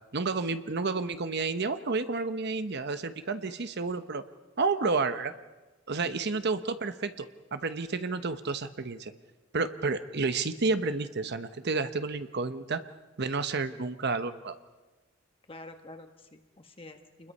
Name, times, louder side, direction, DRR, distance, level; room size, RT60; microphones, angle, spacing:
voice 1, 0.1-4.2 4.6-5.3 5.9-9.1 9.5-12.8 13.2-14.6, right 4 dB, 55° right, 10 dB, 0.9 m, -30 dB
voice 2, 15.5-17.3, left 2 dB, 30° left, 5 dB, 1.3 m, -48 dB
28.0 x 21.0 x 5.4 m, 1.2 s
head